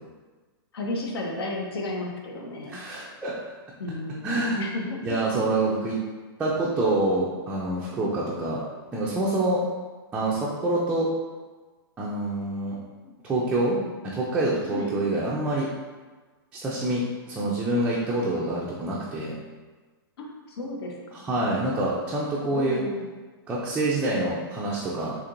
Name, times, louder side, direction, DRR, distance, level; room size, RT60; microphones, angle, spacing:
voice 1, 0.7-2.8 3.8-5.2 13.0-13.1 13.7-13.9 14.7-14.9 20.2-21.2 22.5-23.1, left 2 dB, 80° left, 1 dB, 0.8 m, -33 dB
voice 2, 2.7-3.3 4.2-4.6 5.0-6.0 6.4-8.6 8.9-9.6 10.1-11.1 12.0-12.8 13.2-13.8 14.0-15.7 16.5-19.4 21.1-22.8 23.5-25.2, right 2 dB, 10° right, -6 dB, 0.3 m, -26 dB
4.3 x 2.9 x 2.5 m, 1.3 s
hypercardioid pair, 150°, 13 cm